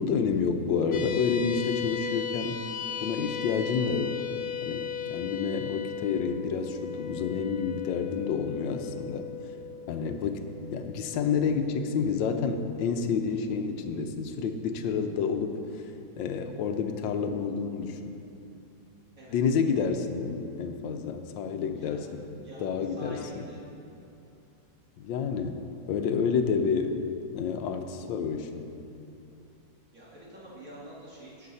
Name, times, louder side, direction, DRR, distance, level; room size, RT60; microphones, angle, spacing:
voice 1, 0.0-2.6 3.0-4.2 4.6-9.3 9.9-10.4 10.7-15.6 16.2-18.1 19.3-22.2 22.6-23.5 25.0-25.6 25.9-27.0 27.3-28.7, left 6 dB, 85° left, 7 dB, 1.4 m, -29 dB
sound 1, 0.9-13.6, left 7 dB, 65° left, 1.1 m, -37 dB
voice 2, 21.8-22.1 22.4-22.7 23.0-23.6 29.9-31.5, equal, 45° right, -7 dB, 2.8 m, -46 dB
16.0 x 6.5 x 4.1 m, 2.8 s
omnidirectional pair, 2.0 m